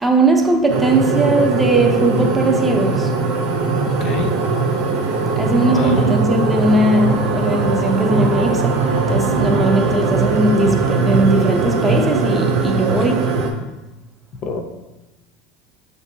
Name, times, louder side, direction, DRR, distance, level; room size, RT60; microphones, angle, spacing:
voice 1, 0.0-3.1 5.3-13.3, right 2 dB, 10° right, 0.5 m, -18 dB
sound 1, 0.7-13.5, right 4 dB, 65° right, 0.6 m, -19 dB
voice 2, 3.9-4.4 5.7-6.1 12.9-13.1 14.4-14.6, left 3 dB, 50° left, 0.5 m, -26 dB
6.3 x 2.6 x 2.6 m
supercardioid pair, 120°, 0 cm